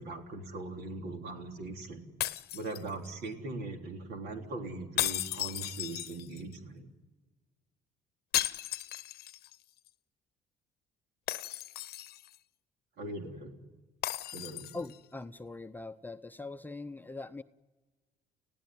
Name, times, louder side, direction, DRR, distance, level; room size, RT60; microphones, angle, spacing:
voice 1, 0.0-2.0 2.5-6.9 13.0-13.5 14.3-14.7, right 2 dB, 70° right, 4 dB, 3.6 m, -40 dB
sound 1, 2.2-3.3 5.0-6.5 8.3-9.5 9.9-10.0 11.3-12.4 14.0-15.0, left 14 dB, 70° left, 0.8 m, -35 dB
voice 2, 14.7-17.4, left 3 dB, 10° left, 8 dB, 0.7 m, -42 dB
29.5 x 16.5 x 9.4 m, 1.3 s
cardioid pair, 110°, 17 cm